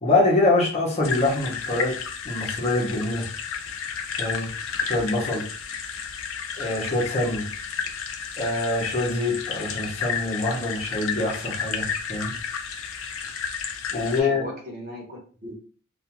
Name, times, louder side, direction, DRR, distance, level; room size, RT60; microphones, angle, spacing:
voice 1, 0.0-3.3 4.2-4.5 4.8-5.5 6.6-7.5 8.4-12.3 13.9-14.5, left 2 dB, 30° left, 0.7 m, -24 dB
sound 1, 1.0-14.2, left 6 dB, 75° left, 0.4 m, -32 dB
voice 2, 13.9-15.5, equal, 45° right, 0.8 m, -38 dB
2.4 x 2.3 x 2.8 m
head